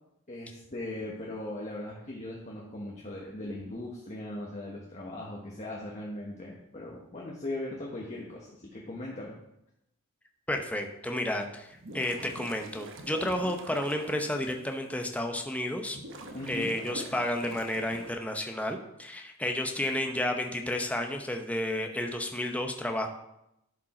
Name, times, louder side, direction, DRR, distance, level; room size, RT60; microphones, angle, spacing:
voice 1, 0.3-9.4 16.3-16.7, left 1 dB, 35° left, -3 dB, 1.2 m, -39 dB
voice 2, 10.5-11.7 11.9-16.0 16.5-23.1, left 1 dB, 5° left, 3 dB, 0.8 m, -31 dB
sound 1, 11.7-14.5 15.1-15.2 15.9-18.1, right 1 dB, 65° right, 1.0 m, -44 dB
11.0 x 5.2 x 4.3 m, 0.83 s
head